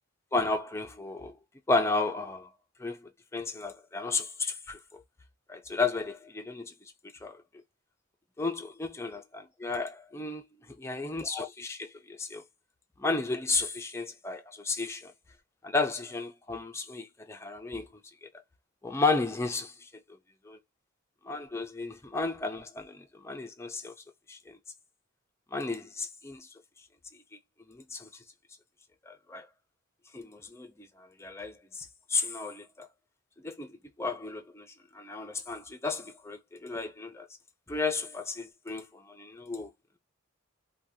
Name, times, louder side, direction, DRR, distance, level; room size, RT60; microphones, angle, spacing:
voice 1, 0.3-1.3 1.7-2.5 2.8-5.0 5.5-6.7 7.2-7.4 8.4-10.4 10.8-12.4 13.0-15.1 15.6-17.9 18.8-19.9 20.4-20.6 21.2-23.9 24.3-24.6 25.5-26.5 27.7-28.1 29.1-29.5 30.1-32.9 33.4-33.7 34.0-37.3 37.7-39.7, left 3 dB, 15° left, 0.4 m, -33 dB
2.6 x 2.2 x 3.4 m
head